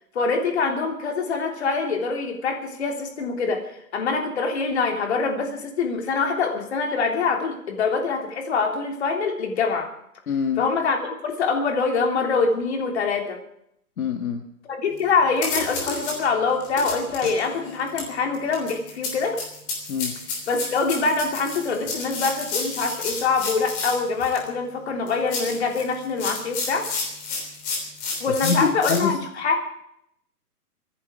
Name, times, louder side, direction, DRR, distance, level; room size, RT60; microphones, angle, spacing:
voice 1, 0.1-9.9 10.6-13.4 14.6-19.4 20.5-26.9 28.2-29.6, left 4 dB, 45° left, 3 dB, 3.3 m, -24 dB
voice 2, 10.3-10.6 14.0-14.4 19.9-20.1 28.3-29.2, left 6 dB, 60° left, 5 dB, 1.7 m, -25 dB
sound 1, 15.0-15.1 15.4-16.2 16.6-24.5 25.1-29.0, left 4 dB, 20° left, 3.2 m, -31 dB
24.5 x 11.0 x 4.9 m, 0.75 s
hypercardioid pair, 170°, 47 cm